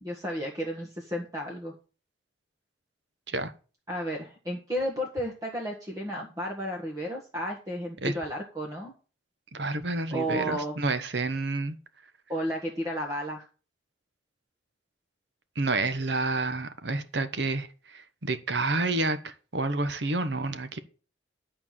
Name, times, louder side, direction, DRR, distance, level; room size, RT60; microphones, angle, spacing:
voice 1, 0.0-1.7 3.9-8.9 10.1-10.7 12.3-13.4, equal, 20° right, 1.5 m, -32 dB
voice 2, 9.5-11.8 15.6-20.8, right 2 dB, 65° right, 1.1 m, -29 dB
11.0 x 4.6 x 7.5 m
head